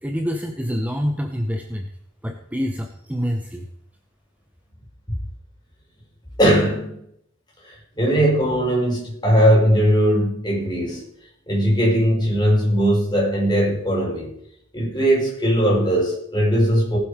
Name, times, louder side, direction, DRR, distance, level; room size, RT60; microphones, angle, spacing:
voice 1, 0.0-1.9 2.2-3.7, equal, 10° right, 4 dB, 0.9 m, -26 dB
voice 2, 6.4-7.0 7.6-11.0 11.5-14.3 14.7-17.0, equal, 20° left, -3 dB, 5.4 m, -19 dB
19.0 x 7.3 x 5.1 m, 0.72 s
head